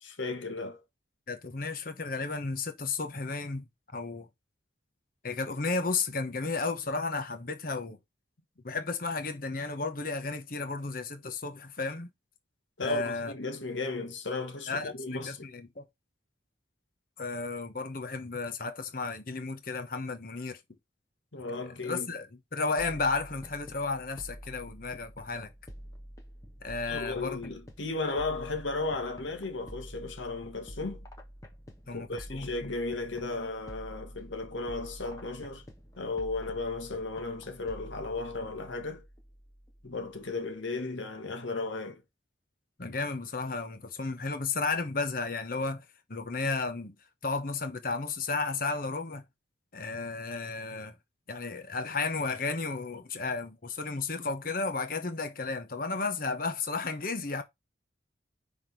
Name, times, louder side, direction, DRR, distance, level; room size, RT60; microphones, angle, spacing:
voice 1, 0.0-0.8 12.8-15.5 21.3-22.1 26.9-31.0 31.9-35.6 36.0-39.0 39.8-42.0, left 3 dB, 80° left, 1.4 m, -35 dB
voice 2, 1.3-3.7 3.9-4.3 5.2-8.0 8.6-12.1 12.8-13.3 14.7-15.8 17.2-20.6 21.8-25.5 26.6-27.5 31.9-32.7 42.8-46.9 47.2-49.2 49.7-50.9 51.3-57.4, left 3 dB, 50° left, 1.0 m, -33 dB
sound 1, 22.8-40.4, equal, 15° left, 1.0 m, -48 dB
5.8 x 3.7 x 4.6 m
head